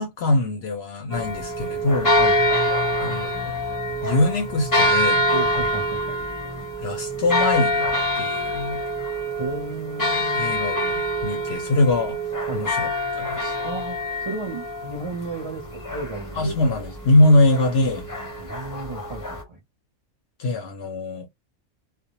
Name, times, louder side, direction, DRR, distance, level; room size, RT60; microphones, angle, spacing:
voice 1, 0.0-2.2 3.0-3.5 4.0-5.2 6.8-7.9 8.1-8.8 10.4-12.2 12.5-12.9 13.2-13.5 16.4-18.0 20.4-21.3, left 2 dB, 65° left, 0.7 m, -22 dB
sound 1, 1.1-19.4, equal, 20° left, 0.5 m, -25 dB
voice 2, 2.1-2.4 5.3-6.2 9.4-10.5 12.5-12.7 13.6-16.6 18.4-19.6, right 2 dB, 45° right, 0.4 m, -33 dB
2.2 x 2.1 x 2.8 m
omnidirectional pair, 1.4 m